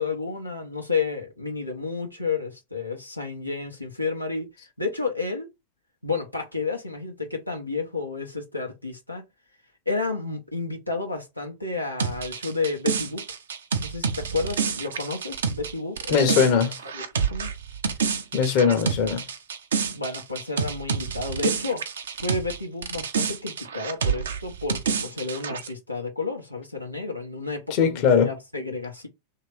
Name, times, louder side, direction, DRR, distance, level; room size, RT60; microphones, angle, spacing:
voice 1, 0.0-5.5 6.0-9.2 9.9-13.2 13.8-16.4 16.9-17.5 19.9-21.8 22.2-29.1, left 4 dB, 90° left, 0.9 m, -31 dB
sound 1, 12.0-22.6 22.8-25.7, right 6 dB, 65° right, 0.6 m, -28 dB
voice 2, 16.1-16.7 18.3-19.2 27.7-28.3, left 6 dB, 45° left, 0.9 m, -20 dB
3.1 x 2.8 x 4.5 m
figure-of-eight pair, 90°, 0 cm